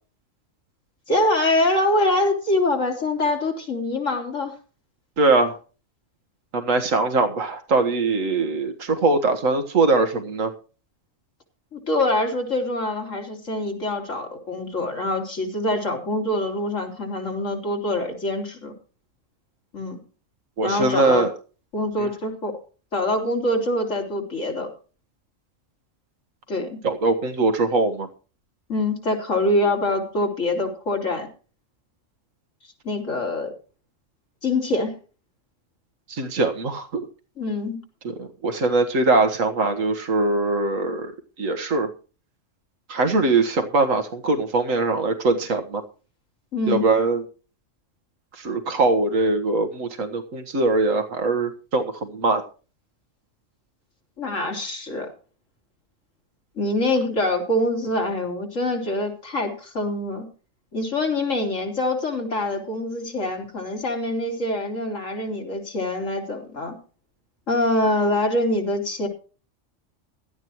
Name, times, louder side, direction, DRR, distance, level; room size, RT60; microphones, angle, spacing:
voice 1, 1.1-4.6 11.7-18.7 19.7-20.0 20.6-21.3 21.7-22.6 22.9-24.7 26.5-26.8 28.7-31.3 32.9-33.5 34.4-35.0 37.4-37.8 46.5-46.9 54.2-55.1 56.6-60.3 60.7-66.8 67.5-69.1, left 1 dB, 75° left, 2 dB, 3.6 m, -24 dB
voice 2, 5.2-5.6 6.5-10.5 20.6-21.3 22.0-22.1 26.8-28.1 36.1-37.1 38.2-41.1 41.4-41.9 42.9-45.8 46.7-47.2 48.4-52.4, right 3 dB, 90° right, 6 dB, 1.8 m, -22 dB
16.5 x 12.5 x 3.0 m, 0.36 s
omnidirectional pair, 1.3 m